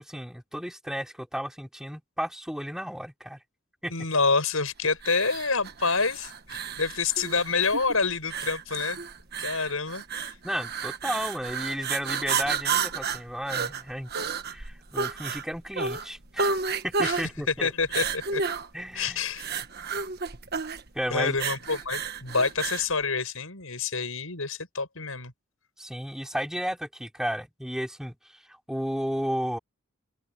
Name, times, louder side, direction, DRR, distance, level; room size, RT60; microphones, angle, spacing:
voice 1, 0.0-3.4 3.8-3.9 10.4-14.1 14.5-16.5 16.8-17.7 18.7-19.2 20.9-21.4 25.8-28.1 28.7-29.6, equal, 5° right, 4.7 m, -33 dB
voice 2, 3.9-9.0 9.4-10.4 17.0-17.2 17.6-18.4 18.9-19.5 21.1-25.3, left 4 dB, 80° left, 6.2 m, -27 dB
sound 1, 5.0-22.9, right 5 dB, 50° right, 1.5 m, -31 dB
open air
head